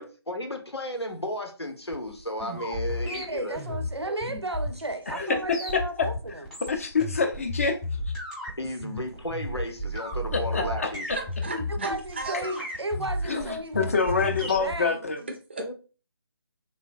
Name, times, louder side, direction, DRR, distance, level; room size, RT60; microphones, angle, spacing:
voice 1, 0.0-3.8 8.6-11.1 15.6-15.7, equal, 90° left, 0.8 m, -34 dB
sound 1, 1.9-14.8, left 1 dB, ahead, 0.7 m, -33 dB
voice 2, 3.0-6.5 8.6-8.7 10.5-11.0 11.7-15.1, right 1 dB, 90° right, 0.5 m, -34 dB
voice 3, 5.1-6.1 6.7-7.8 10.3-10.9 13.3-15.2, left 4 dB, 35° left, 0.4 m, -26 dB
voice 4, 11.1-12.6 15.2-15.7, right 3 dB, 25° right, 0.4 m, -37 dB
3.3 x 2.2 x 2.5 m
figure-of-eight pair, 150°, 13 cm